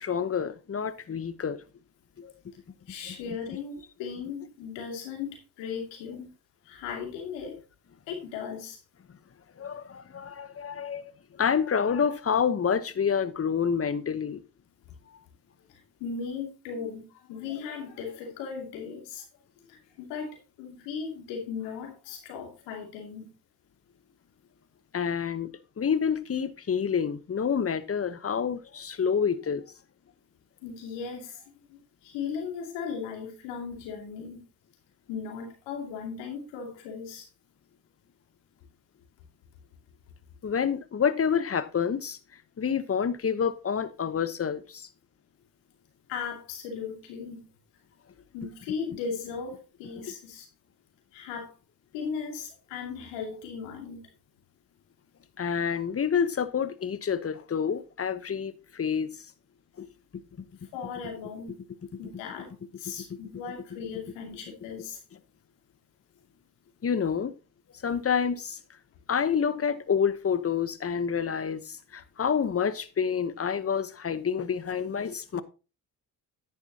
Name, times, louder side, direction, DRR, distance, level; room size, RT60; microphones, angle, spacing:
voice 1, 0.0-1.6 2.2-2.3 3.0-3.1 9.6-11.0 11.3-14.4 24.9-25.5 25.8-29.6 40.4-42.2 42.6-44.9 55.4-59.1 59.8-59.9 63.1-63.2 66.8-67.3 67.8-68.6 69.1-75.4, left 7 dB, 35° left, 1.0 m, -28 dB
voice 2, 2.9-6.3 6.6-7.6 8.1-8.8 15.7-19.2 19.6-23.3 30.6-34.4 35.1-37.3 46.1-47.4 48.3-50.5 51.1-51.5 51.9-54.0 60.7-61.6 62.0-62.5 62.8-65.0, left 6 dB, 85° left, 2.7 m, -37 dB
10.0 x 9.5 x 2.9 m
supercardioid pair, 60°, 42 cm